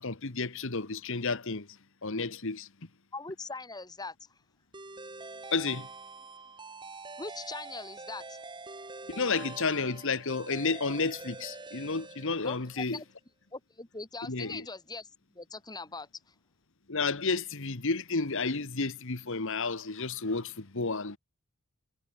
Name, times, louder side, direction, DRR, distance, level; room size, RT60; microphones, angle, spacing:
voice 1, 0.0-1.7 2.0-2.7 5.5-5.9 9.1-13.0 14.3-14.6 16.9-21.2, left 4 dB, 60° left, 1.6 m, -31 dB
voice 2, 3.1-4.2 7.2-8.4 12.4-13.1 13.5-15.1 15.3-16.3, left 3 dB, 20° left, 2.2 m, -41 dB
sound 1, 4.7-12.9, right 3 dB, 20° right, 2.6 m, -45 dB
head